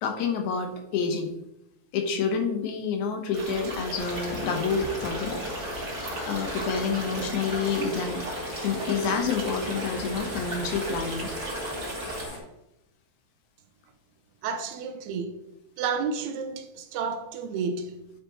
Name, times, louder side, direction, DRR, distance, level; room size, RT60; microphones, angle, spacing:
voice 1, 0.0-1.3 1.9-5.4 6.3-8.2 8.6-11.3, left 5 dB, 80° left, 2.4 m, -28 dB
sound 1, 3.3-12.3, right 1 dB, 35° right, 1.5 m, -35 dB
sound 2, 4.0-12.4, left 2 dB, 45° left, 1.9 m, -38 dB
sound 3, 5.9-12.4, equal, 15° left, 0.9 m, -48 dB
voice 2, 14.4-15.5 15.8-18.1, right 5 dB, 80° right, 1.9 m, -31 dB
8.9 x 4.7 x 2.9 m
omnidirectional pair, 3.4 m